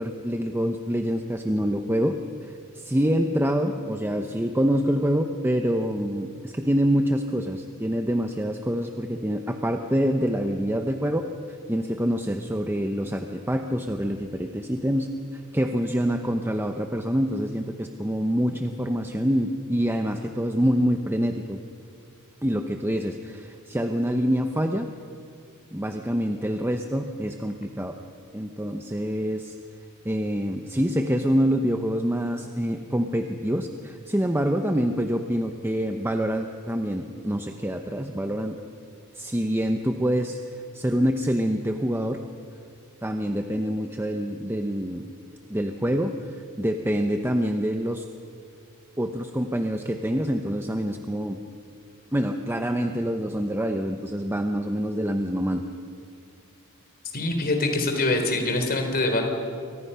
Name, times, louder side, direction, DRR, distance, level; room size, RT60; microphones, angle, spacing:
voice 1, 0.0-2.2 2.4-21.6 22.4-24.9 25.7-28.0 28.3-29.6 30.0-38.6 39.1-40.4 40.7-42.2 43.0-45.1 45.5-48.0 49.0-51.4 52.1-55.6, equal, 10° right, 5 dB, 0.9 m, -26 dB
voice 2, 57.1-59.3, left 2 dB, 45° left, 4 dB, 3.7 m, -24 dB
28.5 x 24.0 x 5.7 m, 2.5 s
head